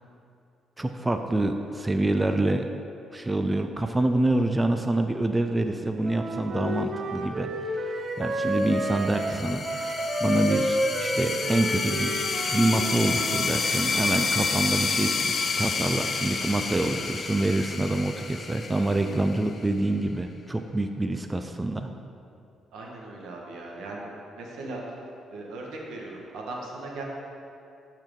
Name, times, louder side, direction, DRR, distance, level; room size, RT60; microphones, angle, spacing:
voice 1, 0.8-2.7 3.1-12.2 12.5-21.9, right 2 dB, 15° right, 6 dB, 0.4 m, -26 dB
Wind instrument woodwind instrument, 6.0-13.5, equal, 50° right, 0.8 m, -30 dB
sound 1, 8.5-19.7, left 4 dB, 45° left, 0.6 m, -29 dB
voice 2, 22.7-24.1 24.4-27.0, right 2 dB, 85° right, -2 dB, 1.3 m, -38 dB
12.5 x 4.6 x 3.7 m, 2.6 s
cardioid pair, 90°, 0 cm